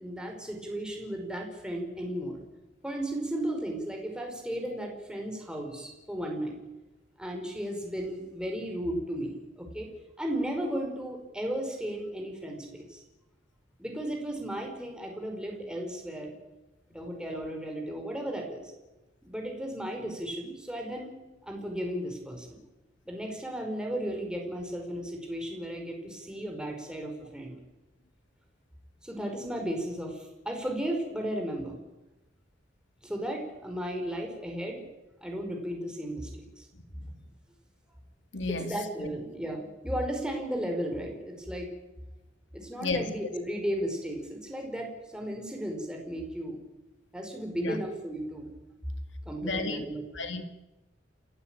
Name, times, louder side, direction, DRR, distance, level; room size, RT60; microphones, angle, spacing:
voice 1, 0.0-2.4 2.8-6.6 7.2-9.9 10.2-13.0 13.8-16.3 16.9-18.7 19.2-22.6 23.0-27.5 29.0-31.8 33.0-34.8 35.2-36.7 38.5-41.7 42.5-46.6 47.1-48.5 49.2-50.0, right 1 dB, 5° right, 1 dB, 5.0 m, -35 dB
voice 2, 38.3-38.7 39.0-39.1 42.8-43.1 47.6-47.8 49.4-49.8 50.1-50.4, left 3 dB, 70° left, 7 dB, 2.6 m, -32 dB
29.0 x 15.5 x 9.1 m, 1.0 s
head